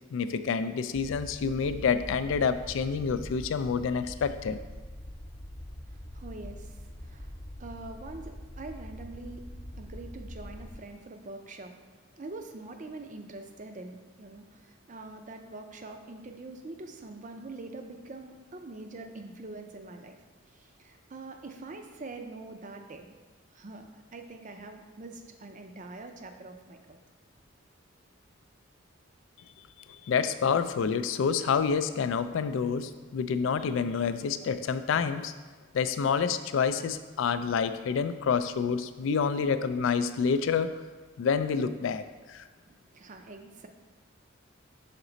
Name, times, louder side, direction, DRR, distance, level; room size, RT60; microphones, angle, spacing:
voice 1, 0.1-4.6 30.1-35.3 35.7-40.8 41.2-42.0 42.3-42.4, left 6 dB, 65° left, 11 dB, 0.3 m, -28 dB
sound 1, 0.9-10.8, equal, 45° left, 0.8 m, -44 dB
voice 2, 5.9-9.5 9.7-23.1 23.5-27.0 42.7-43.7, right 2 dB, 35° right, 5 dB, 0.5 m, -44 dB
5.9 x 4.1 x 3.9 m, 1.3 s
head